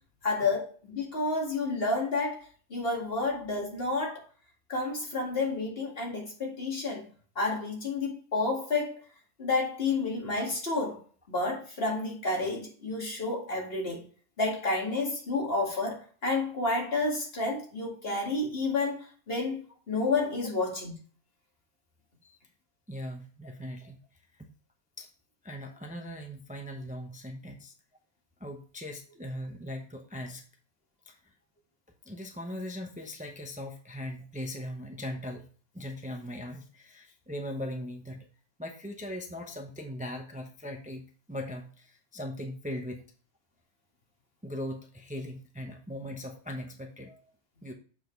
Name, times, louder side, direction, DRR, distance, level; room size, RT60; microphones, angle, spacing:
voice 1, 0.2-2.4 2.7-4.2 4.7-7.1 7.4-9.0 9.4-11.0 11.3-14.0 14.4-19.6 19.9-21.0, left 3 dB, 55° left, 2.4 m, -30 dB
voice 2, 22.9-24.0 24.4-24.5 25.0-25.1 25.4-27.7 28.4-30.4 31.0-31.2 32.1-35.5 35.7-38.3 38.6-43.0 44.4-47.2 47.6-47.7, left 1 dB, 10° right, 0.8 m, -39 dB
7.0 x 5.9 x 3.2 m
omnidirectional pair, 1.2 m